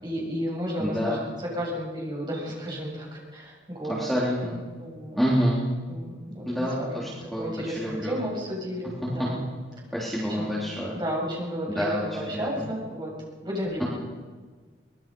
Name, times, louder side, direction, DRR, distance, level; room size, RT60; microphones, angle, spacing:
voice 1, 0.0-1.2 1.5-4.1 4.8-5.2 5.9-7.1 7.4-9.4 10.4-10.5 10.9-13.1 13.4-13.9, equal, 25° right, -3 dB, 8.0 m, -32 dB
voice 2, 0.8-1.2 3.9-4.6 5.1-5.6 6.5-8.2 9.0-9.3 9.9-11.0 11.7-12.1 12.3-12.6, equal, ahead, -7 dB, 3.6 m, -27 dB
24.5 x 21.0 x 5.5 m, 1.5 s
head